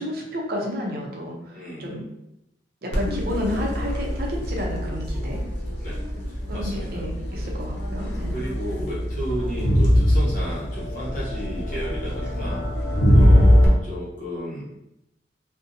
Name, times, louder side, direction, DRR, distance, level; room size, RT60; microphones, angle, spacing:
voice 1, 0.0-1.5 1.8-2.0 2.8-5.4 6.5-8.4 13.1-13.8, left 1 dB, 55° right, -1 dB, 0.5 m, -31 dB
voice 2, 1.5-2.0 5.8-6.0 6.5-7.0 8.3-14.6, equal, 50° left, -6 dB, 0.9 m, -33 dB
Crowd, 2.9-13.7, equal, 70° left, 0.6 m, -22 dB
2.5 x 2.1 x 2.6 m, 0.84 s
head